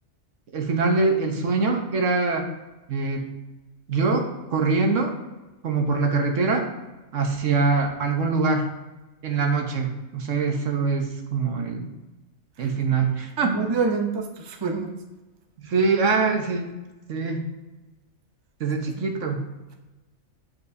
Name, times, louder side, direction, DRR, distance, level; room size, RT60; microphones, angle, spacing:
voice 1, 0.5-2.5 2.9-3.2 3.9-5.1 5.6-6.6 7.1-8.7 9.2-11.9 12.6-13.5 15.6-16.7 17.1-17.5 18.6-19.4, right 4 dB, 70° right, 3 dB, 1.3 m, -23 dB
voice 2, 13.4-14.9, right 4 dB, 30° right, 3 dB, 0.5 m, -26 dB
8.1 x 7.3 x 2.7 m, 1.1 s
omnidirectional pair, 1.4 m